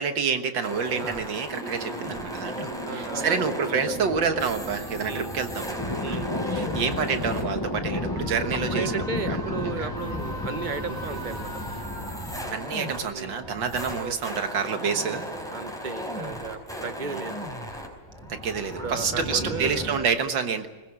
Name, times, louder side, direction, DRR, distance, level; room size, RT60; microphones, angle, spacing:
voice 1, 0.0-5.8 6.1-6.2 6.5-10.2 12.5-15.3 17.0-17.2 18.3-20.7, right 6 dB, 75° right, 7 dB, 2.1 m, -28 dB
sound 1, 0.6-20.0, equal, ahead, 4.6 m, -36 dB
voice 2, 1.0-1.4 2.8-3.4 3.7-3.8 5.0-5.3 6.0-6.3 8.7-11.5 13.1-13.4 14.0-14.5 15.5-17.3 18.8-19.9, right 4 dB, 30° right, 10 dB, 1.0 m, -34 dB
sound 2, 1.5-14.3, right 2 dB, 45° right, 5.0 m, -41 dB
sound 3, 5.8-11.8, left 2 dB, 20° left, 0.7 m, -32 dB
21.0 x 20.5 x 8.7 m, 1.2 s
omnidirectional pair, 2.0 m